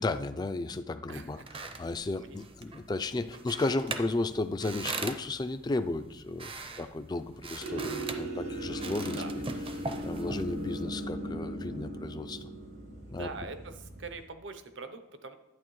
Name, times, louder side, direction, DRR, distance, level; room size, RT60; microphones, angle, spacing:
voice 1, 0.0-9.2 10.0-12.5 13.1-13.3, left 2 dB, 20° left, 10 dB, 0.3 m, -34 dB
sound 1, 1.2-10.8, right 3 dB, 30° right, 0.6 m, -42 dB
sound 2, 7.6-14.2, right 1 dB, 90° right, 2.9 m, -38 dB
voice 2, 13.1-15.4, right 3 dB, 65° right, 9 dB, 0.7 m, -43 dB
11.5 x 8.9 x 3.1 m, 1.0 s
head